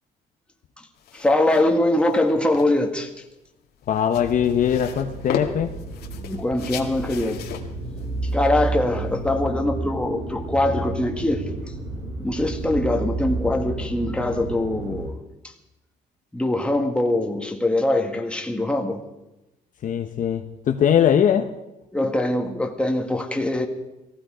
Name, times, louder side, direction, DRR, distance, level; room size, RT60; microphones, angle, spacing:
sound 1, 1.0-9.5, left 8 dB, 70° left, 2.1 m, -37 dB
voice 1, 1.1-3.1 6.2-7.5 8.3-11.5 12.2-15.2 16.3-19.0 21.9-23.7, left 1 dB, 5° left, 1.8 m, -23 dB
voice 2, 3.9-5.7 19.8-21.5, left 9 dB, 50° left, 1.0 m, -21 dB
sound 2, 4.1-15.1, right 2 dB, 80° right, 3.7 m, -31 dB
18.0 x 15.5 x 5.0 m
cardioid pair, 110°, 17 cm